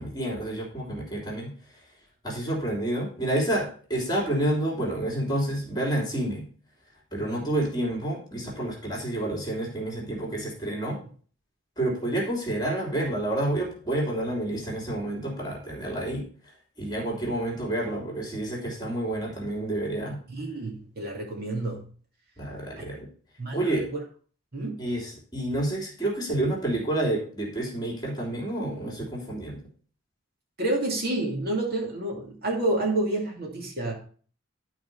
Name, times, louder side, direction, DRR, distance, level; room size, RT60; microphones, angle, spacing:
voice 1, 0.0-1.5 2.2-6.5 7.1-11.0 11.8-16.2 16.8-20.2 22.4-23.1 23.5-23.9 24.8-29.6, right 1 dB, 20° left, -2 dB, 3.2 m, -29 dB
voice 2, 20.3-21.9 22.8-22.9 23.4-23.9 24.5-24.8 30.6-33.9, right 2 dB, 45° right, -1 dB, 2.5 m, -29 dB
12.0 x 4.7 x 5.4 m, 0.43 s
head